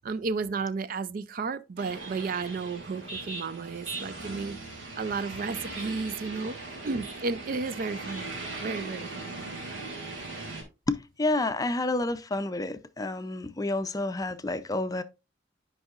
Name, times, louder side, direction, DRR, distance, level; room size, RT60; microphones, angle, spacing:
voice 1, 0.0-4.6 5.0-6.6 6.8-8.3 8.6-9.3, right 4 dB, 50° right, 0.4 m, -33 dB
sound 1, 1.8-10.6, right 3 dB, 80° right, 2.8 m, -39 dB
voice 2, 10.9-15.0, left 2 dB, 20° left, 0.5 m, -29 dB
10.5 x 5.4 x 2.4 m
head